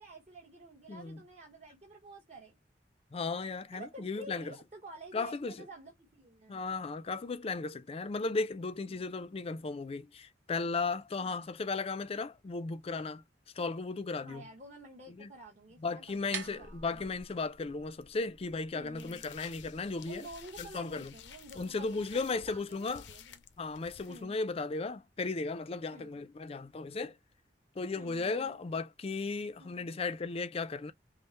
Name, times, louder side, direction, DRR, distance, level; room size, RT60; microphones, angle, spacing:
voice 1, 0.0-2.6 3.7-6.6 8.9-9.0 11.2-11.4 14.2-17.1 18.7-19.2 20.1-23.4 24.1-24.4 25.9-26.2 28.0-28.6 29.6-29.9, right 2 dB, 40° right, 1.1 m, -51 dB
voice 2, 0.9-1.2 3.1-4.5 5.1-5.6 6.5-13.2 13.6-14.5 15.2-15.3 15.8-20.2 20.6-21.1 21.5-23.0 23.6-27.2 27.8-30.9, left 3 dB, 35° left, 0.4 m, -35 dB
sound 1, 16.0-22.0, right 7 dB, 85° right, 0.8 m, -49 dB
sound 2, 19.0-24.2, left 8 dB, 85° left, 0.6 m, -53 dB
5.4 x 2.1 x 2.9 m
head